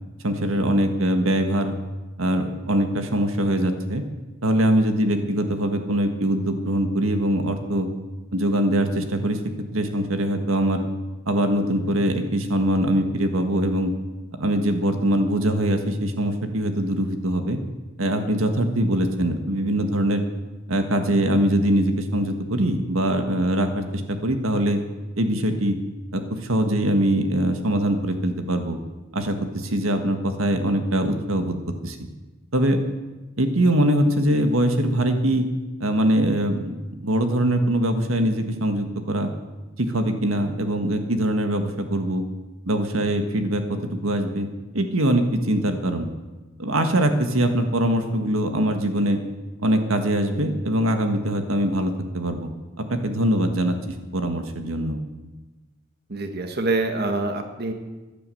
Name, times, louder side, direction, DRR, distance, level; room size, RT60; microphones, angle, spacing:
voice 1, 0.2-1.7 2.2-4.0 4.4-7.9 8.3-9.4 9.7-10.8 11.2-13.9 14.4-17.6 18.0-20.2 20.7-24.8 25.2-25.8 26.1-28.8 29.1-31.5 31.8-32.0 32.5-32.8 33.4-35.4 35.8-36.7 37.0-39.3 39.8-42.2 42.6-44.5 44.7-46.1 46.6-49.2 49.6-52.5 52.8-53.8 54.1-55.0, right 1 dB, 85° right, 7 dB, 1.7 m, -22 dB
voice 2, 56.1-57.7, right 2 dB, 50° right, 6 dB, 1.5 m, -25 dB
15.5 x 11.0 x 7.8 m, 1.1 s
head